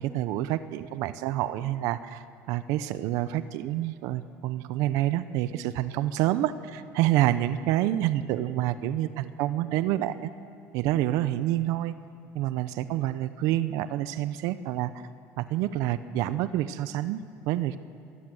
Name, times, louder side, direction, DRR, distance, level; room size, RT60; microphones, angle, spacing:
voice 1, 0.0-10.3 10.7-11.9 12.3-14.9 15.4-17.2 17.5-17.8, right 13 dB, 70° right, 13 dB, 0.8 m, -28 dB
26.5 x 20.0 x 7.9 m, 2.4 s
cardioid pair, 135°, 6 cm